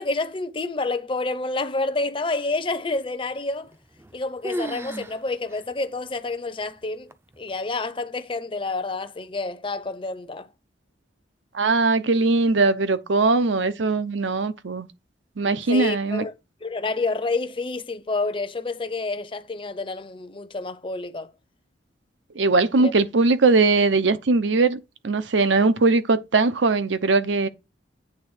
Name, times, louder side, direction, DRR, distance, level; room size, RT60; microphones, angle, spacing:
voice 1, 0.0-3.7 4.1-10.5 15.7-16.3 16.6-21.3 22.8-22.9, left 3 dB, 30° left, 0.7 m, -28 dB
sound 1, 3.7-4.2 4.4-5.2 5.5-5.6 6.3-6.4 7.1-7.5, right 1 dB, 15° right, 0.5 m, -33 dB
voice 2, 11.5-14.9 15.4-16.2 22.4-27.5, right 3 dB, 85° right, 0.8 m, -20 dB
8.7 x 3.4 x 6.3 m
head